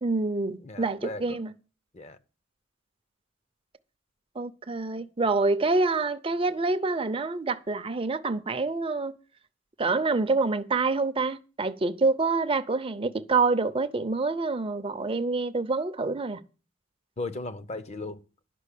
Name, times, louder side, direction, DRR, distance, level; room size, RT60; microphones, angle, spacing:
voice 1, 0.0-1.5 4.4-9.1 9.8-16.4, right 3 dB, 30° right, 0.6 m, -27 dB
voice 2, 0.6-1.4 1.9-2.2 17.2-18.2, left 2 dB, 35° left, 0.7 m, -36 dB
11.5 x 5.6 x 8.3 m
head